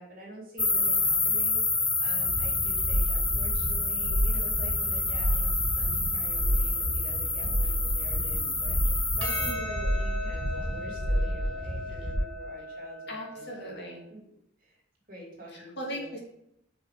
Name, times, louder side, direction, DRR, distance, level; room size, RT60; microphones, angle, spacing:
voice 1, 0.0-13.7 14.1-14.2 14.6-14.8 15.1-16.1, right 1 dB, 45° right, -3 dB, 2.8 m, -46 dB
sound 1, 0.6-9.5, left 3 dB, 5° left, 0.3 m, -28 dB
sound 2, 2.3-12.1, equal, 25° left, 1.7 m, -30 dB
Percussion, 9.2-13.8, left 1 dB, 75° right, 2.1 m, -38 dB
voice 2, 13.1-14.1 15.5-16.2, equal, 55° left, -2 dB, 2.3 m, -38 dB
6.2 x 5.5 x 4.9 m, 0.76 s
head